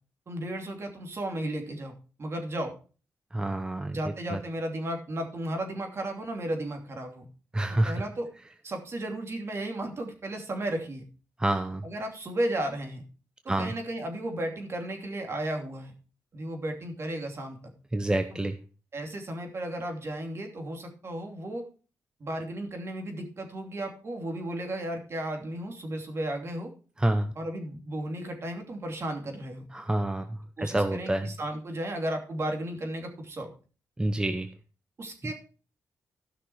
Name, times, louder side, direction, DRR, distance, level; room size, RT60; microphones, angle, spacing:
voice 1, 0.3-2.7 3.9-7.2 7.8-8.3 8.6-11.0 11.8-13.0 13.4-15.9 16.3-17.6 18.3-18.4 18.9-21.6 22.2-26.7 27.4-29.6 30.6-33.5 35.0-35.3, right 1 dB, 45° right, 4 dB, 2.9 m, -34 dB
voice 2, 3.3-4.0 4.3-4.4 7.5-7.9 11.4-11.9 13.5-13.7 17.9-18.6 27.0-27.3 29.7-31.3 34.0-34.5 35.2-35.3, right 1 dB, 15° right, 9 dB, 0.8 m, -28 dB
13.5 x 6.0 x 4.7 m, 0.36 s
cardioid pair, 90°, 6 cm